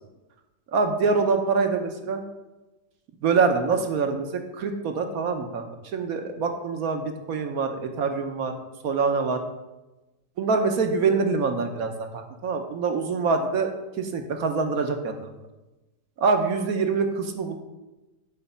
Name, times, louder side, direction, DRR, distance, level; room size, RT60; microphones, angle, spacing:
voice 1, 0.7-2.2 3.2-4.3 4.5-5.7 5.9-9.4 10.4-15.4 16.2-17.5, right 4 dB, 60° right, 5 dB, 1.3 m, -25 dB
10.5 x 4.8 x 5.5 m, 1.1 s
omnidirectional pair, 1.9 m